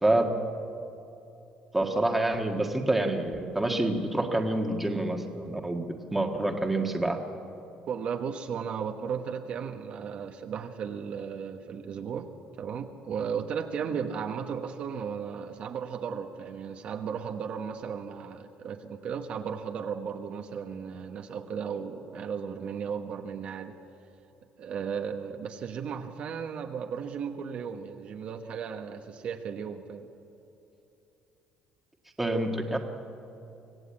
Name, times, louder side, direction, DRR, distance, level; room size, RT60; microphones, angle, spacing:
voice 1, 1.7-7.2 32.2-32.8, right 2 dB, 5° right, 3 dB, 1.5 m, -27 dB
voice 2, 7.9-23.8 24.6-30.1, right 7 dB, 45° right, 5 dB, 1.1 m, -35 dB
25.0 x 17.0 x 8.6 m, 2.8 s
cardioid pair, 160°, 3 cm